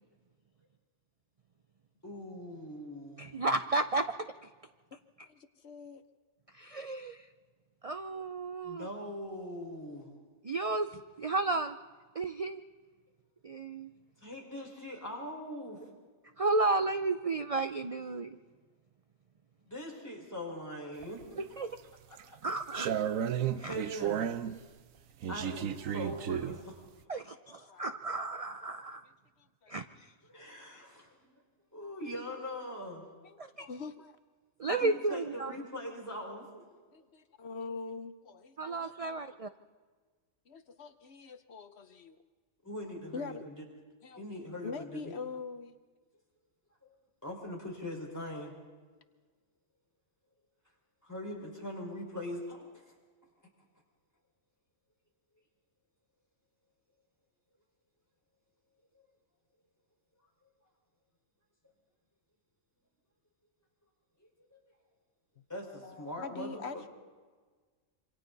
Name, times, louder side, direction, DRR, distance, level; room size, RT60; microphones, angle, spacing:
voice 1, 2.0-3.4 8.6-10.1 14.2-15.8 19.6-21.5 23.6-24.3 25.3-26.8 27.1-27.2 30.3-31.3 31.7-33.1 34.6-36.6 42.6-43.6 44.2-45.2 46.8-46.9 47.2-48.5 51.0-52.9 64.2-64.6 65.5-66.9, left 1 dB, 15° left, -1 dB, 4.9 m, -42 dB
voice 2, 3.2-4.1 4.4-4.5 6.5-7.3 7.8-8.9 10.4-11.8 12.1-12.6 13.4-13.9 16.4-18.4 21.4-21.7 22.4-22.9 23.6-23.8 27.1-29.0 29.7-30.1 33.4-33.7 34.6-35.5 38.6-39.5, right 3 dB, 45° right, 9 dB, 0.5 m, -33 dB
voice 3, 5.3-6.0 25.8-25.9 27.5-27.9 29.6-29.7 33.2-34.2 36.9-39.4 40.5-42.2 43.1-43.5 44.0-44.2 44.6-45.8 65.4-65.5 65.8-66.9, left 4 dB, 60° left, 9 dB, 1.1 m, -44 dB
sound 1, 21.0-21.7 22.2-24.6 25.2-26.6, right 9 dB, 90° right, 1.2 m, -33 dB
27.0 x 25.5 x 4.1 m, 1.5 s
omnidirectional pair, 1.3 m